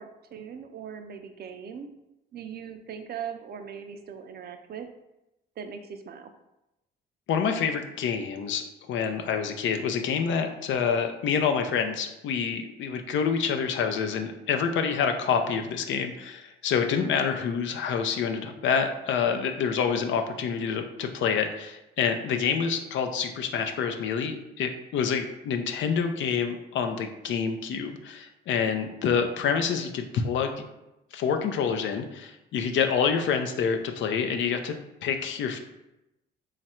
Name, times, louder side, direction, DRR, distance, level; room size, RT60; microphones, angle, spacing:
voice 1, 0.0-1.9 2.3-4.9 5.6-6.3, right 7 dB, 55° right, 7 dB, 0.5 m, -40 dB
voice 2, 7.3-30.6 31.1-34.7 35.0-35.6, left 6 dB, 70° left, 5 dB, 0.5 m, -27 dB
3.1 x 2.4 x 4.3 m, 0.93 s
cardioid pair, 90°, 20 cm